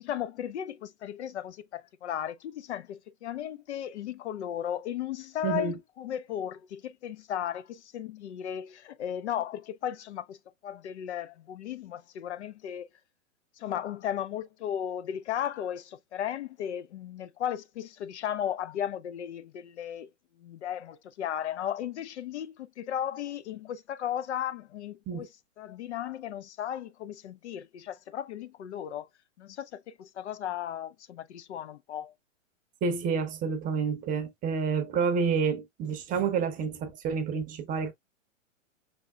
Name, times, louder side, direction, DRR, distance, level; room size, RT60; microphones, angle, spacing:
voice 1, 0.0-10.4 10.6-12.9 13.6-20.1 20.4-25.3 25.6-29.1 29.4-32.1, left 10 dB, 60° left, 0.5 m, -35 dB
voice 2, 5.4-5.7 25.1-25.3 32.8-37.9, right 6 dB, 20° right, 0.8 m, -29 dB
5.6 x 3.5 x 2.3 m
hypercardioid pair, 120°, 39 cm